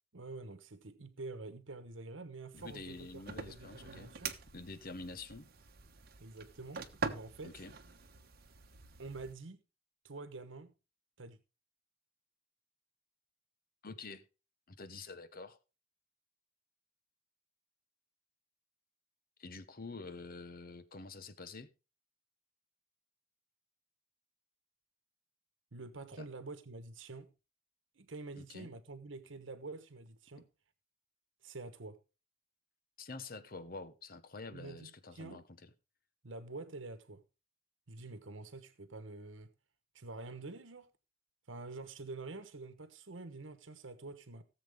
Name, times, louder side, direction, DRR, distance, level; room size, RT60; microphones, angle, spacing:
voice 1, 0.1-4.3 6.2-7.6 9.0-9.6 10.0-10.7 11.2-11.4 25.7-27.3 27.9-30.5 31.4-32.0 34.5-35.4 36.2-37.2 37.9-39.5 39.9-40.9 41.5-44.4, right 3 dB, 85° right, 1.1 m, -47 dB
voice 2, 2.5-4.1 4.5-5.4 7.4-7.7 13.8-14.2 14.7-15.6 19.4-21.7 26.2-26.3 28.4-28.7 33.0-35.4, left 3 dB, 50° left, 1.1 m, -47 dB
sound 1, 2.5-9.3, right 4 dB, 55° right, 1.2 m, -45 dB
17.5 x 7.4 x 3.5 m
head